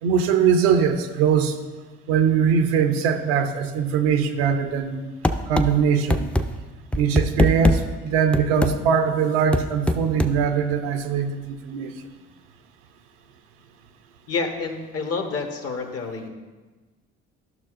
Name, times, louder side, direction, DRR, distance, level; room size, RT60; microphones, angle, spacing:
voice 1, 0.0-1.5 2.1-5.0 5.5-6.3 7.0-11.9, right 7 dB, 85° right, 7 dB, 0.7 m, -21 dB
sound 1, 5.2-5.7 6.1-6.4 6.9-7.8 8.3-8.7 9.5-10.3, left 1 dB, 5° left, 0.4 m, -20 dB
voice 2, 14.3-16.3, left 4 dB, 50° left, 4 dB, 1.2 m, -28 dB
12.0 x 6.0 x 2.5 m, 1.3 s
hypercardioid pair, 60°, 30 cm